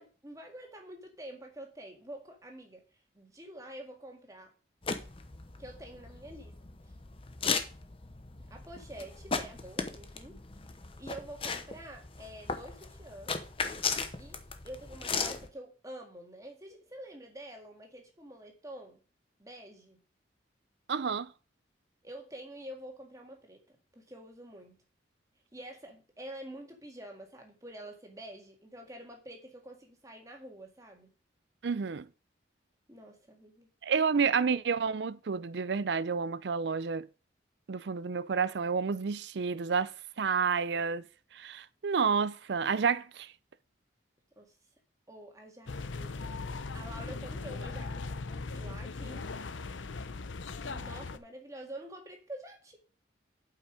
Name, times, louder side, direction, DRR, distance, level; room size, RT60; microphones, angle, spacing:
voice 1, 0.0-2.8 3.1-4.5 5.6-6.5 8.5-10.4 11.0-13.4 14.2-19.0 19.4-20.0 22.0-24.8 25.5-31.1 32.9-33.7 44.4-44.5 45.1-49.3 50.6-52.8, right 1 dB, 15° right, 1.9 m, -47 dB
sound 1, 4.8-15.5, left 5 dB, 30° left, 0.8 m, -37 dB
voice 2, 20.9-21.3 31.6-32.1 33.8-37.1 37.7-41.0 41.3-43.3, right 5 dB, 65° right, 0.5 m, -30 dB
sound 2, 45.7-51.2, left 3 dB, 85° left, 0.7 m, -39 dB
8.1 x 5.8 x 5.0 m
head